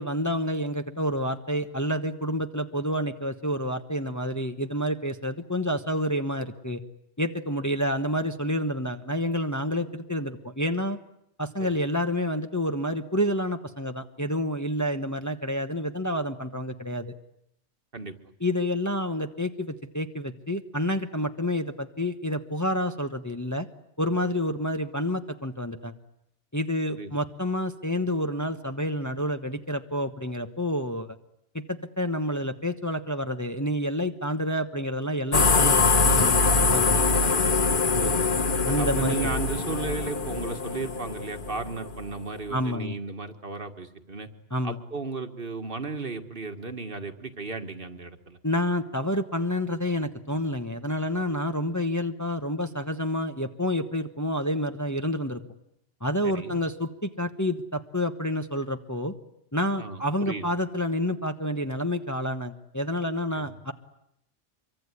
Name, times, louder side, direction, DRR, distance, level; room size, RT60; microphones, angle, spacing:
voice 1, 0.0-6.8 7.2-11.0 11.4-17.1 18.4-23.7 24.0-25.9 26.5-31.1 31.5-37.3 38.6-39.3 42.5-42.9 44.5-44.8 48.4-55.4 56.0-59.1 59.5-63.7, equal, 15° left, 6 dB, 1.1 m, -29 dB
sound 1, 35.3-42.1, left 4 dB, 45° left, 1.4 m, -23 dB
voice 2, 37.9-38.3 38.8-44.3 44.6-48.4 56.2-56.6 59.8-60.4 63.4-63.5, right 4 dB, 50° right, 7 dB, 1.9 m, -35 dB
25.5 x 24.0 x 9.8 m, 0.78 s
omnidirectional pair, 1.2 m